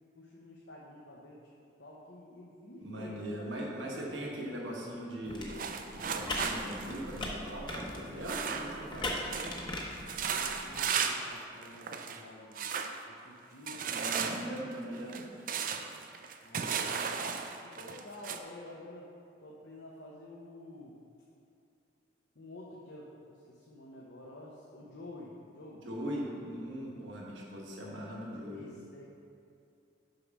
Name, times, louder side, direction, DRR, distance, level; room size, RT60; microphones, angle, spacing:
voice 1, 0.1-1.5 1.8-4.0 7.9-9.9 10.3-12.7 13.1-14.9 16.4-17.2 17.6-19.1 19.4-20.9 22.3-26.2 28.5-29.0, left 1 dB, 65° left, -4 dB, 0.9 m, -50 dB
voice 2, 2.8-5.5 5.9-9.1 13.9-15.3 25.8-28.7, equal, 75° right, -3 dB, 1.5 m, -40 dB
sound 1, 5.2-10.8, left 1 dB, 25° left, 0.9 m, -40 dB
sound 2, 5.5-9.0 9.3-9.6 9.9-11.3 11.6-12.2 12.6-13.0 13.7-18.4, right 6 dB, 45° right, 0.4 m, -35 dB
6.6 x 5.4 x 6.0 m, 2.5 s
head